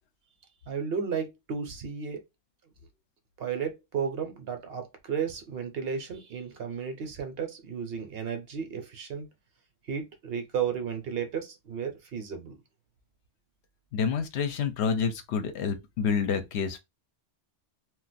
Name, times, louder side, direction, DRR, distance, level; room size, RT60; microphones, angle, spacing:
voice 1, 0.7-2.2 3.4-9.3 9.9-12.6, right 7 dB, 60° right, 0.8 m, -33 dB
voice 2, 13.9-16.8, left 6 dB, 70° left, 0.8 m, -28 dB
2.4 x 2.2 x 3.8 m
omnidirectional pair, 1.2 m